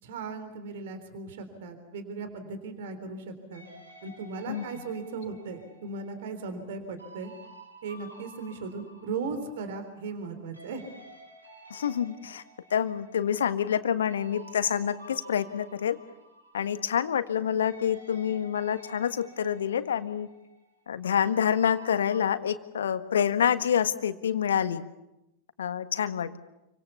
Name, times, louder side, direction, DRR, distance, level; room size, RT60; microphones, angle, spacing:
voice 1, 0.0-3.6 4.0-7.3 7.8-10.8, right 4 dB, 60° right, 9 dB, 3.7 m, -37 dB
sound 1, 3.5-10.3 10.5-17.4 17.6-22.2, right 1 dB, 85° right, 5.9 m, -52 dB
voice 2, 11.7-12.4 12.7-16.0 16.5-20.3 20.9-24.8 25.6-26.4, left 8 dB, 70° left, 10 dB, 1.5 m, -27 dB
29.0 x 25.0 x 7.1 m, 0.91 s
figure-of-eight pair, 90°, 0 cm